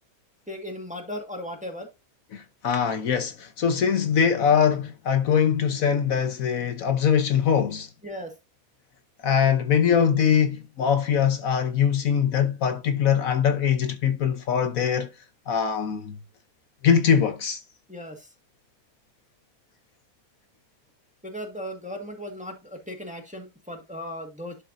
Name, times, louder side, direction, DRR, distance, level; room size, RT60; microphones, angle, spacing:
voice 1, 0.5-1.9 8.0-8.3 9.4-9.5 17.9-18.3 21.2-24.6, equal, 5° right, 1.5 m, -37 dB
voice 2, 2.3-7.9 9.2-15.1 15.5-16.2 16.8-17.6, left 7 dB, 65° left, 1.3 m, -22 dB
11.0 x 4.5 x 2.6 m
omnidirectional pair, 1.6 m